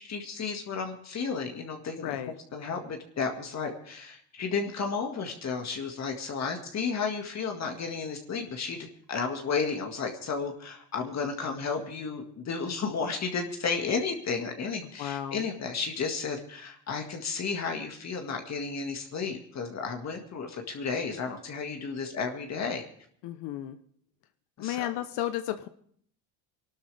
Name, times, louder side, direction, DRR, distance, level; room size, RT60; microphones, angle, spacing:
voice 1, 0.0-2.2 2.5-22.8 24.6-24.9, left 5 dB, 40° left, 3 dB, 2.0 m, -33 dB
voice 2, 2.0-2.3 15.0-15.5 23.2-23.8 24.6-25.7, left 12 dB, 70° left, 9 dB, 1.0 m, -33 dB
24.5 x 12.5 x 3.4 m, 0.62 s
cardioid pair, 105°, 41 cm